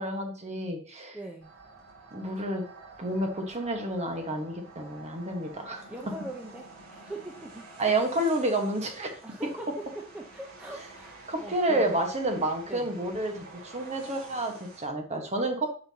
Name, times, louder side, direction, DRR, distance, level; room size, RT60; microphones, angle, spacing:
voice 1, 0.0-1.2 2.1-2.6 3.0-5.8 7.8-9.1 11.3-15.7, right 1 dB, 30° right, 3 dB, 1.4 m, -29 dB
voice 2, 1.1-1.5 5.9-7.7 9.2-9.7 10.1-12.0 12.7-12.9, right 1 dB, 5° right, 0 dB, 0.8 m, -41 dB
sound 1, 1.4-14.9, right 3 dB, 85° right, 2.7 m, -49 dB
9.3 x 5.7 x 2.9 m, 0.43 s
head